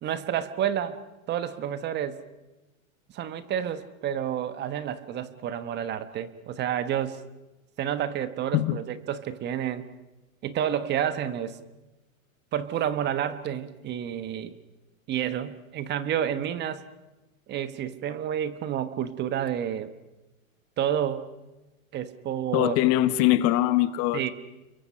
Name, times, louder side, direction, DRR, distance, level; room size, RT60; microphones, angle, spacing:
voice 1, 0.0-1.0 1.3-2.2 3.1-7.2 7.8-9.9 10.4-11.6 12.5-14.5 15.1-16.8 17.5-19.9 20.8-21.3 21.9-22.8 24.1-24.3, right 9 dB, 25° right, 12 dB, 1.3 m, -29 dB
voice 2, 22.5-24.3, left 15 dB, 35° left, 14 dB, 1.0 m, -22 dB
29.5 x 23.0 x 5.7 m, 1.0 s
hypercardioid pair, 135°, 42 cm